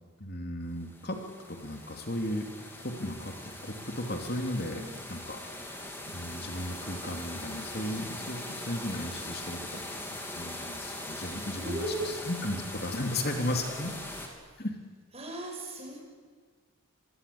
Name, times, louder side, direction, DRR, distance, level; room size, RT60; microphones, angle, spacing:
voice 1, 0.2-1.2 1.5-3.3 3.6-4.8 5.1-5.7 6.1-9.8 10.4-13.9 14.6-14.8, left 1 dB, 45° left, 4 dB, 3.0 m, -35 dB
sound 1, 0.8-14.3, left 1 dB, 10° left, 3.4 m, -41 dB
voice 2, 11.6-12.1 13.6-13.9 15.1-16.0, right 1 dB, 30° right, 2 dB, 6.3 m, -37 dB
26.0 x 22.5 x 8.7 m, 1.5 s
head